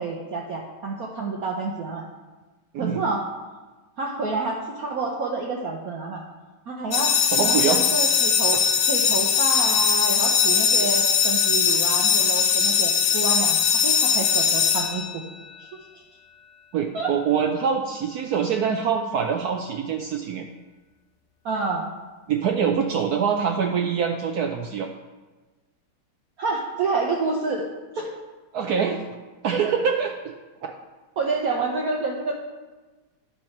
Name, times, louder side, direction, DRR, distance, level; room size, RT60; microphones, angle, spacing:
voice 1, 0.0-2.0 2.8-3.3 4.0-6.2 6.7-15.2 15.6-15.7 15.9-16.0 16.9-17.1 21.4-21.9 26.4-27.7 27.9-28.2 31.2-32.4, right 3 dB, 60° right, -1 dB, 1.1 m, -28 dB
sound 1, 6.9-15.6, left 7 dB, 75° left, 1.4 m, -21 dB
voice 2, 7.3-7.8 16.7-20.5 22.3-24.9 28.5-29.0 29.4-30.1 30.6-30.7, right 7 dB, 80° right, 4 dB, 0.8 m, -24 dB
10.5 x 4.6 x 5.8 m, 1.2 s
omnidirectional pair, 2.3 m